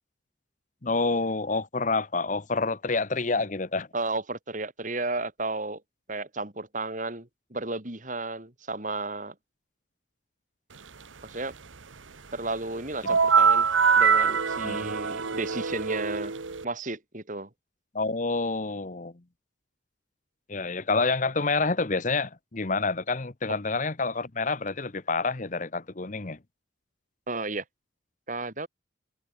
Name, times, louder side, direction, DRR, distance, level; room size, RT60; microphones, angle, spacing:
voice 1, 0.8-3.9 14.6-14.9 17.9-19.1 20.5-26.4, left 3 dB, 40° left, 1.0 m, -28 dB
voice 2, 3.9-5.8 6.1-9.3 11.2-11.5 12.3-13.7 14.0-16.3 16.6-17.5 27.3-27.6 28.3-28.7, right 2 dB, 40° right, 3.1 m, -33 dB
sound 1, 13.0-16.6, right 6 dB, 85° right, 1.2 m, -23 dB
head